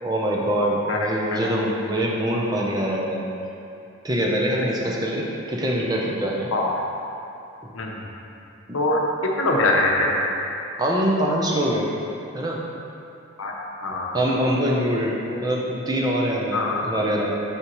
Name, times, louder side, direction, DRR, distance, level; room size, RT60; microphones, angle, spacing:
voice 1, 0.0-3.3 4.0-6.5 7.6-7.7 10.8-11.9 12.3-12.6 14.1-17.3, equal, 20° right, -3 dB, 0.6 m, -24 dB
voice 2, 0.9-1.4 6.5-6.8 7.7-8.0 8.7-10.2 13.4-14.2 15.3-15.4 16.5-16.8, left 2 dB, 70° left, -1 dB, 0.8 m, -24 dB
6.6 x 5.8 x 3.0 m, 2.7 s
head